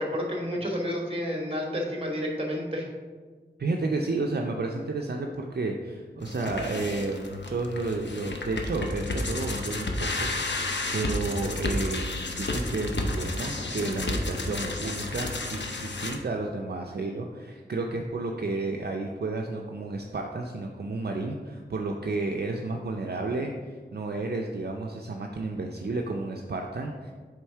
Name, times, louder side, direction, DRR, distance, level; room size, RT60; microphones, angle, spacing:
voice 1, 0.0-2.9, equal, 30° right, 0 dB, 1.4 m, -30 dB
voice 2, 3.6-10.7 10.9-27.1, right 3 dB, 60° right, 1 dB, 0.5 m, -32 dB
sound 1, 6.2-16.2, left 2 dB, 70° left, 0.7 m, -31 dB
8.0 x 3.5 x 4.5 m, 1.5 s
wide cardioid pair, 65°, 19 cm